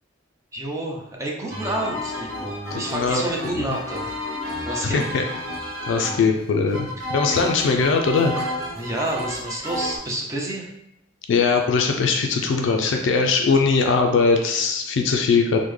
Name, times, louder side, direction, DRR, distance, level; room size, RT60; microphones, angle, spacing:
voice 1, 0.5-4.1 4.7-5.0 7.0-7.1 8.3-10.7, right 1 dB, 15° right, -1 dB, 0.5 m, -29 dB
sound 1, 1.5-10.0, left 1 dB, 85° right, 0.7 m, -31 dB
voice 2, 2.7-3.2 3.6-3.7 4.8-5.2 5.9-8.3 11.3-15.6, left 4 dB, 65° left, 3 dB, 0.3 m, -20 dB
3.5 x 2.1 x 3.1 m, 0.83 s
head